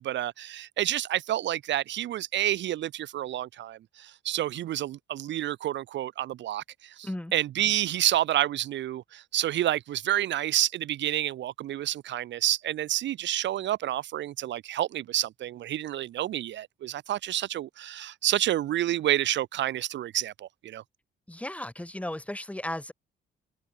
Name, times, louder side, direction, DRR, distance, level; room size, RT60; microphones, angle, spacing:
voice 1, 0.0-20.8, right 12 dB, 65° right, 0.6 m, -29 dB
voice 2, 21.3-22.9, left 1 dB, 5° left, 1.6 m, -35 dB
cardioid pair, 90°, 20 cm